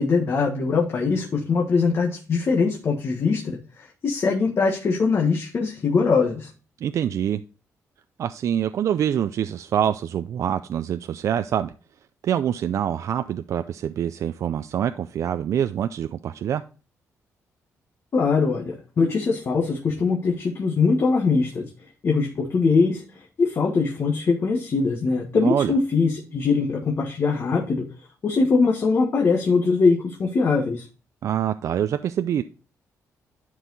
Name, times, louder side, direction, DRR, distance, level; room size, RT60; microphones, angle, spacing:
voice 1, 0.0-6.5 18.1-21.6 22.0-23.0 23.4-27.9 28.2-30.9, left 4 dB, 45° left, 0 dB, 1.4 m, -22 dB
voice 2, 6.8-7.4 8.2-11.7 12.2-16.6 25.3-25.8 31.2-32.4, right 9 dB, 65° right, 10 dB, 0.4 m, -25 dB
11.0 x 4.7 x 4.0 m, 0.36 s
cardioid pair, 110°, 6 cm